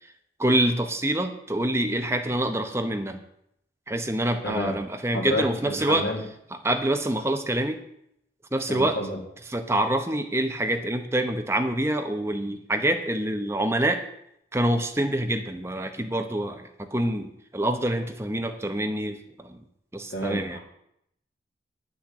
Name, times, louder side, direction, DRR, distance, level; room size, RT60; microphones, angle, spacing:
voice 1, 0.4-3.2 3.9-6.1 6.5-7.8 8.5-9.0 9.5-14.0 14.5-19.6 19.9-20.6, right 1 dB, 15° right, 5 dB, 0.9 m, -26 dB
voice 2, 4.4-4.8 5.1-6.2 8.7-9.2 20.1-20.6, left 1 dB, 75° left, 0 dB, 3.0 m, -30 dB
10.0 x 6.3 x 8.8 m, 0.75 s
head